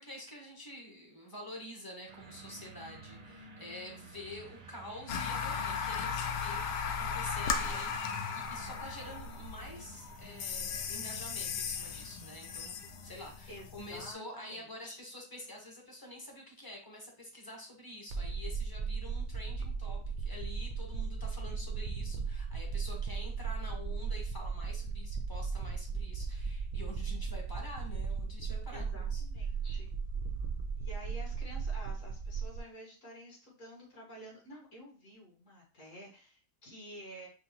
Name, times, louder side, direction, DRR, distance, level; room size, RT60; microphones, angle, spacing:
voice 1, 0.0-12.7 13.0-29.2, left 1 dB, 20° left, -1 dB, 0.8 m, -47 dB
sound 1, 2.1-13.5, right 4 dB, 45° right, 0.7 m, -52 dB
sound 2, 5.1-14.1, left 6 dB, 85° left, 1.2 m, -37 dB
voice 2, 13.5-14.2 14.5-15.0 27.0-27.2 28.7-29.9 30.8-37.3, equal, 50° left, -3 dB, 1.7 m, -50 dB
sound 3, 18.1-32.6, right 5 dB, 65° right, 0.9 m, -36 dB
6.0 x 2.2 x 2.8 m, 0.38 s
omnidirectional pair, 1.8 m